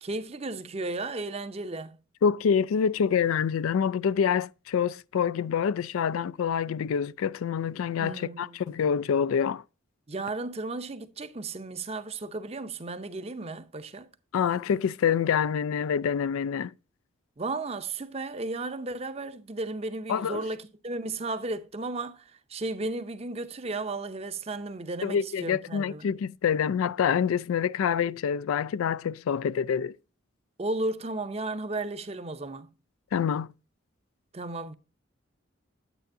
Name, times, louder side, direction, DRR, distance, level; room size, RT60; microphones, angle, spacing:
voice 1, 0.0-2.0 8.0-8.7 10.1-14.1 17.4-26.2 30.6-32.7 34.3-34.7, right 2 dB, 30° right, 0.6 m, -34 dB
voice 2, 2.2-9.6 14.3-16.7 20.1-20.4 25.0-29.9 33.1-33.5, left 7 dB, 90° left, 0.3 m, -26 dB
9.1 x 8.9 x 2.6 m
head